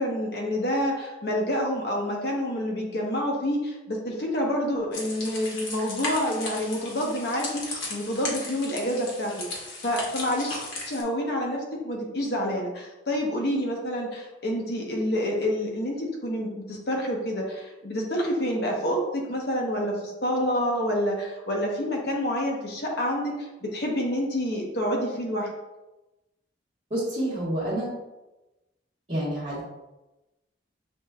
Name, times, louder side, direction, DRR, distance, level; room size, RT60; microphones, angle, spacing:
voice 1, 0.0-10.5 10.9-25.5, equal, 55° left, -1 dB, 0.9 m, -28 dB
sound 1, 4.9-11.0, left 2 dB, 85° left, 1.2 m, -36 dB
voice 2, 26.9-28.0 29.1-29.6, right 1 dB, 35° right, -14 dB, 1.4 m, -28 dB
6.3 x 3.1 x 2.3 m, 1.0 s
head